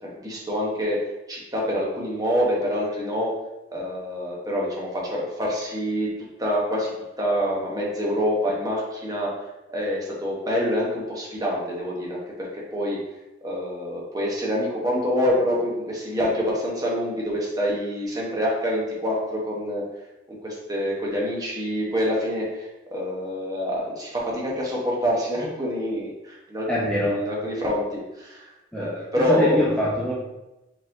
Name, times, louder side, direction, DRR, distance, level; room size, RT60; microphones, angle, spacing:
voice 1, 0.0-3.3 3.7-6.9 7.2-9.3 9.7-13.0 13.4-19.8 20.3-28.5 28.8-29.6, equal, 20° right, -4 dB, 0.9 m, -26 dB
voice 2, 26.7-27.3 28.7-30.1, equal, 5° left, -7 dB, 0.6 m, -25 dB
5.0 x 3.7 x 2.6 m, 0.98 s
head